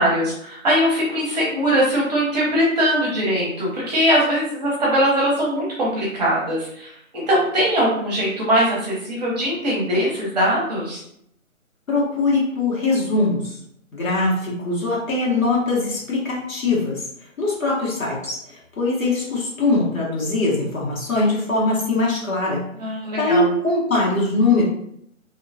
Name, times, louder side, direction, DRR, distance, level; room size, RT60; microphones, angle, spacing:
voice 1, 0.0-11.0 22.8-23.5, equal, 30° right, -5 dB, 0.9 m, -21 dB
voice 2, 11.9-13.6 13.9-17.0 17.4-22.6 23.2-24.6, left 2 dB, 75° left, -4 dB, 1.4 m, -21 dB
2.8 x 2.2 x 2.7 m, 0.72 s
hypercardioid pair, 155°, 41 cm